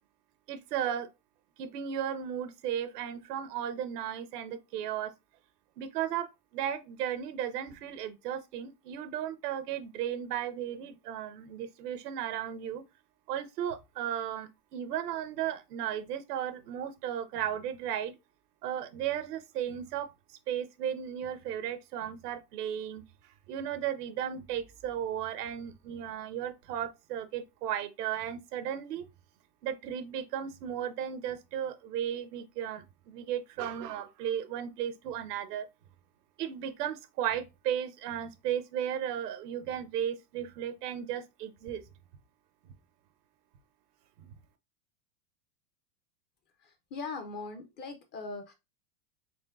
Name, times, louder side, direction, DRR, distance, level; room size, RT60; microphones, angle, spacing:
voice 1, 0.5-1.1 1.6-5.1 5.8-12.8 13.3-18.1 18.6-29.1 29.6-35.7 36.4-41.8 42.7-42.8 44.2-44.4, right 10 dB, 80° right, 0.8 m, -35 dB
voice 2, 46.6-48.5, left 4 dB, 25° left, 0.4 m, -40 dB
4.3 x 3.3 x 2.4 m
supercardioid pair, 130°, 46 cm